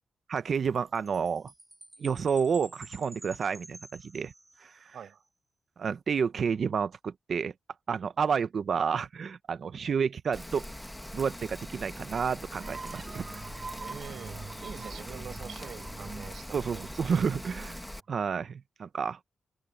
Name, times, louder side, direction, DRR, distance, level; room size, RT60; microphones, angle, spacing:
voice 1, 0.3-1.5 2.0-4.3 4.6-5.0 5.8-7.5 7.9-10.6 11.1-13.4 16.5-17.8 18.1-19.2, right 6 dB, 60° right, 0.7 m, -30 dB
Chime, 0.6-5.0, right 1 dB, 15° right, 7.4 m, -51 dB
Rain, 10.3-18.0, left 1 dB, 5° left, 1.5 m, -42 dB
sound 1, 12.6-18.0, right 4 dB, 40° right, 1.5 m, -45 dB
voice 2, 13.8-16.8, right 8 dB, 80° right, 6.7 m, -45 dB
wide cardioid pair, 115°, 0 cm